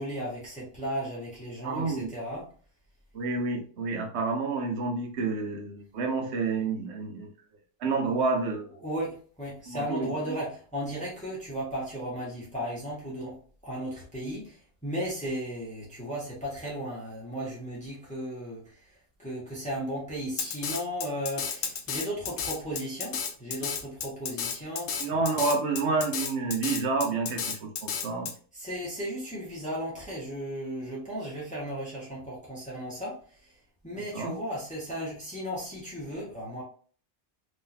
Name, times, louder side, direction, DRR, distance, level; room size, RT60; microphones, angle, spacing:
voice 1, 0.0-2.5 8.8-14.6 14.8-18.6 19.2-25.0 28.5-33.1 33.8-36.6, equal, 5° left, -6 dB, 1.4 m, -35 dB
voice 2, 1.6-2.1 3.1-7.3 7.8-8.8 9.7-10.4 25.0-28.3 33.9-34.4, right 3 dB, 65° right, 3 dB, 1.1 m, -29 dB
Drum kit, 20.4-28.3, left 7 dB, 85° left, 1.0 m, -32 dB
3.7 x 3.1 x 2.8 m, 0.43 s
omnidirectional pair, 1.3 m